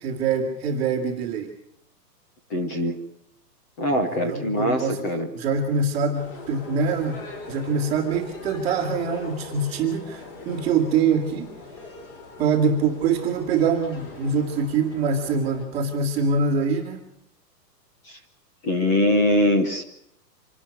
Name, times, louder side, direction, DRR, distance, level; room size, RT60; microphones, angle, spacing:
voice 1, 0.0-1.5 4.1-5.0 5.3-11.5 12.4-17.1, right 5 dB, 10° right, -6 dB, 1.9 m, -24 dB
voice 2, 2.5-3.0 3.8-5.3 18.1-18.2 18.6-19.8, left 1 dB, 10° left, 6 dB, 0.7 m, -22 dB
sound 1, 6.1-15.7, left 3 dB, 30° left, 5.6 m, -41 dB
25.5 x 12.5 x 9.5 m, 0.74 s
hypercardioid pair, 170°, 49 cm